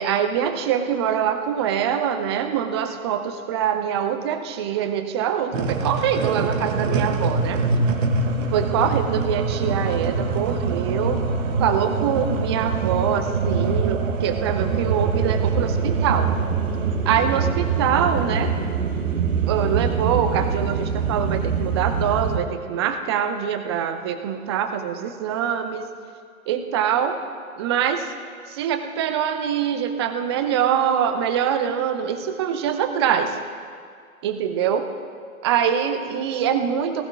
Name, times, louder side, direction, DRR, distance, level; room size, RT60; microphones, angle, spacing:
voice 1, 0.0-7.6 8.5-11.2 11.6-16.3 17.1-18.5 19.5-25.8 26.5-27.1 27.6-28.1 28.5-33.4 34.2-34.8 35.4-37.1, right 8 dB, 20° right, 7 dB, 0.4 m, -24 dB
sound 1, 5.5-22.4, right 4 dB, 60° right, 1.5 m, -24 dB
19.0 x 16.0 x 2.4 m, 2.1 s
figure-of-eight pair, 115°, 44 cm